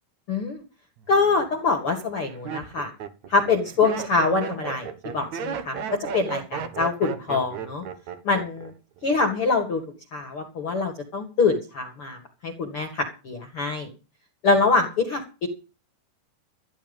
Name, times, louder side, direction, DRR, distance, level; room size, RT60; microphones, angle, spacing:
voice 1, 0.3-0.6 1.1-2.9 3.3-5.8 6.1-7.8 8.2-8.7 9.0-9.8 10.1-12.2 12.4-13.9 14.4-15.5, left 4 dB, 45° left, 3 dB, 2.2 m, -24 dB
Laughter, 1.0-1.5 2.1-8.7 9.0-9.5, right 7 dB, 60° right, 2.2 m, -34 dB
14.5 x 10.5 x 5.4 m, 0.32 s
omnidirectional pair, 4.8 m